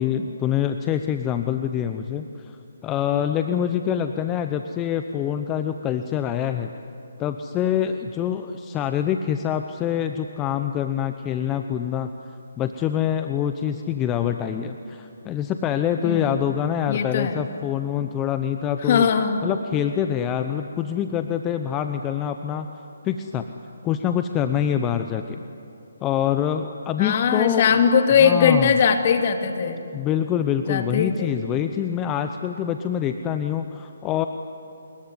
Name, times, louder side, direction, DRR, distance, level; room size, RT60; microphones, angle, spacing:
voice 1, 0.0-2.6 2.8-6.7 7.2-12.1 12.6-19.0 19.4-22.7 23.0-23.5 23.8-25.4 26.0-27.7 28.2-28.7 29.9-34.3, left 9 dB, 15° left, 8 dB, 0.8 m, -25 dB
voice 2, 16.0-16.4 16.9-17.4 18.9-19.4 27.0-29.8 30.7-31.3, left 6 dB, 45° left, 6 dB, 2.4 m, -20 dB
27.0 x 21.5 x 9.7 m, 2.7 s
hypercardioid pair, 150°, 0 cm